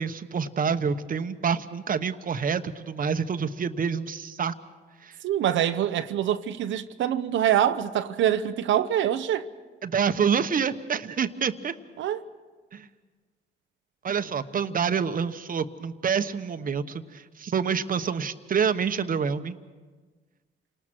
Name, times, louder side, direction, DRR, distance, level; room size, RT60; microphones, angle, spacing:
voice 1, 0.0-4.5 5.0-5.1 9.8-11.7 12.7-12.9 14.0-19.6, right 6 dB, 45° right, 1.1 m, -27 dB
voice 2, 5.2-9.5 12.0-12.2, right 10 dB, 75° right, 0.8 m, -25 dB
28.5 x 19.0 x 6.1 m
cardioid pair, 90°, 20 cm